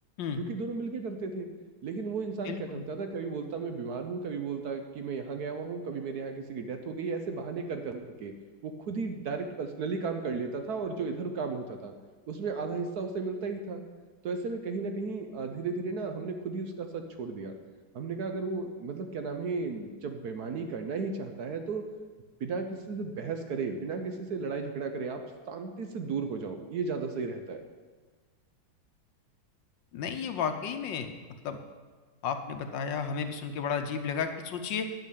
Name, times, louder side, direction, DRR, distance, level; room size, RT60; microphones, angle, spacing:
voice 1, 0.4-1.5 1.8-8.3 8.6-11.9 12.3-13.8 14.2-17.5 17.9-21.8 22.4-25.2 25.5-27.6, right 4 dB, 60° right, 6 dB, 1.2 m, -34 dB
voice 2, 2.4-2.9 29.9-31.1 31.4-31.6 32.2-34.9, left 6 dB, 70° left, 7 dB, 1.4 m, -33 dB
10.5 x 6.1 x 8.5 m, 1.4 s
omnidirectional pair, 2.2 m